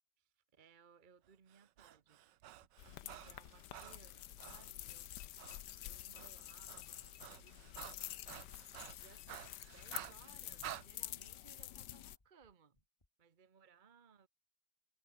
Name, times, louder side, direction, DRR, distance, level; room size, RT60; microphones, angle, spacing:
voice 1, 0.2-2.2 2.8-5.2 5.5-8.1 9.0-12.8 13.2-14.3, right 6 dB, 35° right, 0.9 m, -65 dB
Breathing, 1.5-4.7 5.4-5.6 5.9-10.9, right 13 dB, 80° right, 1.5 m, -52 dB
sound 1, 2.6-7.3 7.5-7.9 8.2-10.7 11.0-13.1, left 2 dB, 15° left, 1.9 m, -74 dB
sound 2, 2.8-12.2, left 13 dB, 70° left, 1.3 m, -49 dB
omnidirectional pair, 2.0 m